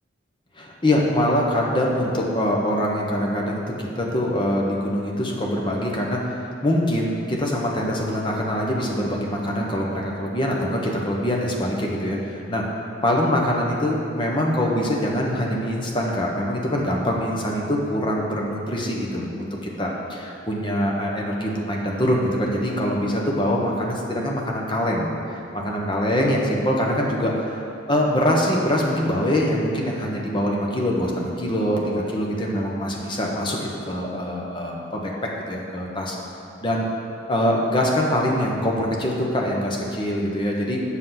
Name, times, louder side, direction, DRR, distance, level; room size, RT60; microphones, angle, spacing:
voice 1, 0.6-6.4 6.6-12.6 13.0-25.1 25.5-27.6 27.9-35.1 35.5-36.2 36.6-36.8 37.3-40.8, equal, 25° left, -2 dB, 1.1 m, -24 dB
7.8 x 6.3 x 5.9 m, 2.6 s
head